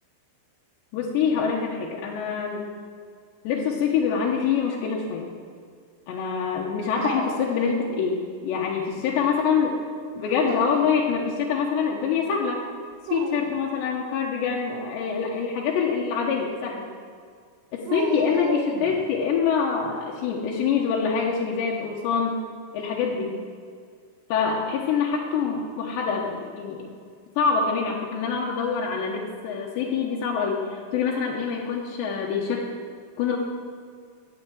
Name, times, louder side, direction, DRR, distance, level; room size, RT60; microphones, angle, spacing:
voice 1, 0.9-2.7 3.4-5.2 6.1-9.8 10.2-12.7 13.1-16.9 17.7-22.4 22.7-23.4 24.3-26.8 27.4-32.7 33.2-33.4, left 6 dB, 80° left, -2 dB, 3.3 m, -25 dB
Dog, 7.0-8.2 8.5-9.2 10.2-11.0 12.9-13.6 17.9-19.2, right 6 dB, 70° right, 2.4 m, -34 dB
14.5 x 6.7 x 8.4 m, 2.1 s
omnidirectional pair, 5.1 m